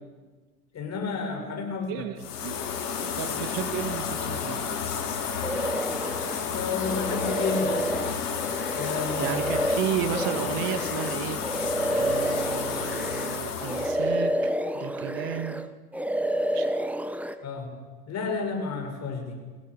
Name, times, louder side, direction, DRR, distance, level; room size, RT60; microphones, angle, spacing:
voice 1, 0.7-2.0 6.1-7.9 8.7-9.4 17.4-17.7 18.1-19.4, left 5 dB, 35° left, 3 dB, 6.2 m, -31 dB
voice 2, 1.9-2.6 3.0-4.6 9.2-15.6 16.5-16.7, right 10 dB, 45° right, 10 dB, 1.9 m, -33 dB
sound 1, 2.2-14.0, left 6 dB, 65° left, 4.3 m, -31 dB
sound 2, 5.4-6.4 6.8-13.4 13.7-15.7 15.9-17.3, right 1 dB, 5° right, 1.1 m, -29 dB
24.5 x 17.5 x 8.8 m, 1.4 s
hypercardioid pair, 85°, 48 cm